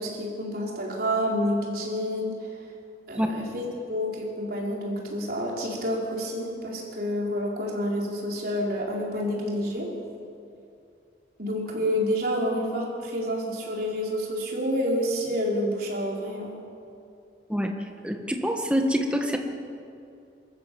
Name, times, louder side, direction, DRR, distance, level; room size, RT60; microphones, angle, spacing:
voice 1, 0.0-2.6 3.1-9.9 11.4-16.6, equal, 55° right, -3 dB, 4.5 m, -29 dB
voice 2, 18.0-19.4, equal, 5° right, 3 dB, 1.6 m, -25 dB
24.5 x 13.5 x 7.8 m, 2.5 s
head